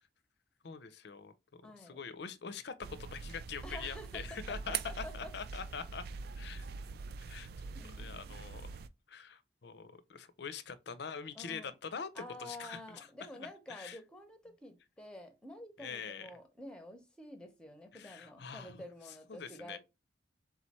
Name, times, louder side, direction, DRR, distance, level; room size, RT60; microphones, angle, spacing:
voice 1, 0.6-6.0 6.4-6.7 7.2-7.5 8.0-8.8 9.1-13.1 13.4-14.0 15.8-16.3 17.9-18.8 19.3-19.8, left 6 dB, 55° left, 0.5 m, -44 dB
voice 2, 1.6-2.0 3.6-5.3 7.7-8.3 11.3-11.7 12.1-19.8, left 1 dB, 5° left, 0.7 m, -49 dB
sound 1, 2.8-8.9, right 5 dB, 50° right, 0.3 m, -43 dB
3.8 x 3.1 x 4.1 m
head